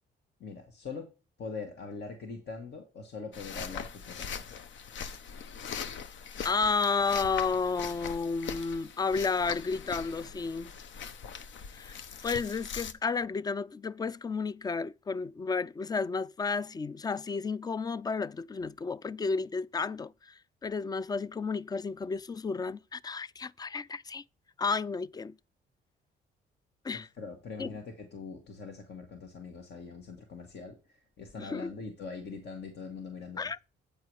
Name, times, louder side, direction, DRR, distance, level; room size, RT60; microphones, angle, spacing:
voice 1, 0.4-1.1 1.4-4.4 27.2-33.4, left 4 dB, 55° left, 1.6 m, -42 dB
sound 1, 3.3-12.9, left 7 dB, 70° left, 0.9 m, -41 dB
voice 2, 6.4-10.7 11.7-12.0 12.2-24.2 24.6-25.3 26.8-27.1 27.6-27.7 31.4-31.7 33.4-33.6, left 4 dB, 20° left, 0.3 m, -32 dB
8.7 x 4.8 x 4.7 m
cardioid pair, 90°, 20 cm